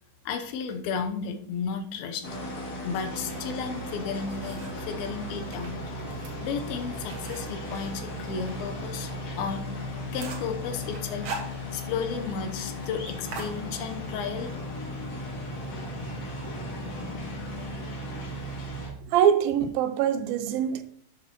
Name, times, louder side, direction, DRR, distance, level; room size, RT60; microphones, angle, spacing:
voice 1, 0.3-2.3 2.8-5.8 6.4-9.1 9.4-9.9 10.1-11.4 11.7-14.6 16.0-16.1, left 6 dB, 90° left, 2.8 m, -33 dB
sound 1, 2.2-18.9, left 1 dB, 50° left, 3.3 m, -36 dB
sound 2, 3.8-4.9 5.4-8.6 9.0-9.1 9.5-9.6 9.8-10.6 10.9-12.0 12.3-12.4 12.7-12.9 13.3-14.2, right 4 dB, 50° right, 2.4 m, -41 dB
voice 2, 19.1-20.8, right 9 dB, 80° right, 2.4 m, -23 dB
11.5 x 7.4 x 3.0 m
omnidirectional pair, 4.2 m